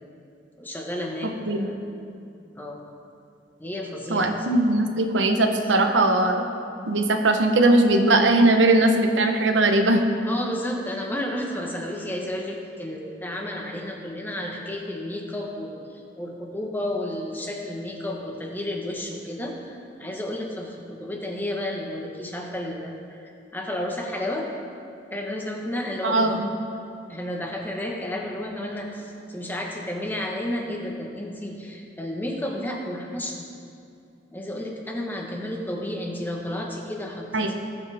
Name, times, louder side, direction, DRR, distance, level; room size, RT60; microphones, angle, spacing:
voice 1, 0.6-1.8 2.5-2.8 3.6-4.7 10.2-24.5 25.1-26.4 27.1-33.5 34.3-37.5, left 1 dB, 10° left, 0 dB, 1.2 m, -32 dB
voice 2, 4.1-6.5 6.9-10.0 26.0-26.5 37.3-37.5, right 2 dB, 85° right, 4 dB, 1.0 m, -20 dB
19.0 x 7.3 x 3.5 m, 2.5 s
head